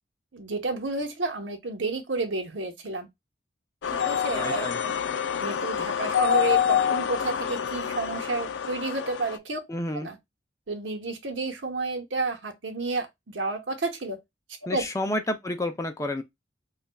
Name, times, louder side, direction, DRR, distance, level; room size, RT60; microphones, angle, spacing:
voice 1, 0.3-3.1 3.9-4.9 5.4-9.6 9.9-10.2 10.7-14.2 14.7-14.8, right 2 dB, 80° right, 1.0 m, -31 dB
sound 1, 3.8-9.4, left 8 dB, 75° left, 0.4 m, -27 dB
voice 2, 4.4-4.8 9.7-10.1 14.7-16.2, left 1 dB, 15° left, 0.4 m, -30 dB
5.3 x 2.4 x 2.2 m
head